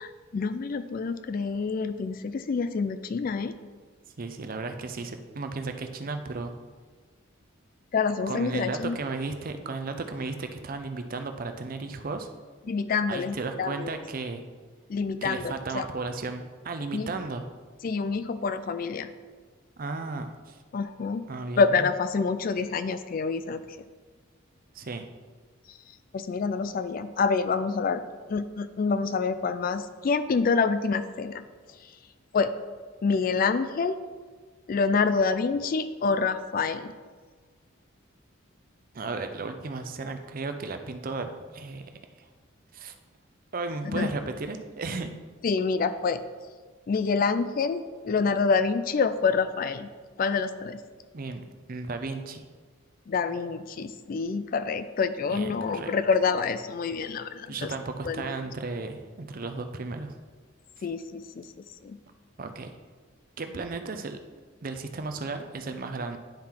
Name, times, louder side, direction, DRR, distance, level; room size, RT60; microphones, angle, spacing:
voice 1, 0.0-3.5 7.9-9.0 12.7-13.9 14.9-15.9 16.9-17.1 17.8-19.1 20.7-21.3 21.6-23.6 25.7-25.8 26.1-28.0 28.3-31.9 32.3-32.5 33.0-34.0 34.7-36.9 43.8-44.1 45.4-46.2 46.9-49.9 50.2-50.8 53.1-57.7 58.0-58.2 60.8-62.0, left 5 dB, 40° left, 11 dB, 0.3 m, -27 dB
voice 2, 4.2-6.5 8.3-12.3 13.1-14.4 15.2-17.4 19.8-20.6 21.3-21.6 24.7-25.1 38.9-42.3 42.7-43.0 43.5-45.1 51.1-52.4 55.3-55.9 57.5-60.1 62.4-62.7 63.4-64.2 64.6-66.2, right 3 dB, 40° right, 7 dB, 0.5 m, -34 dB
10.5 x 4.4 x 3.7 m, 1.5 s
head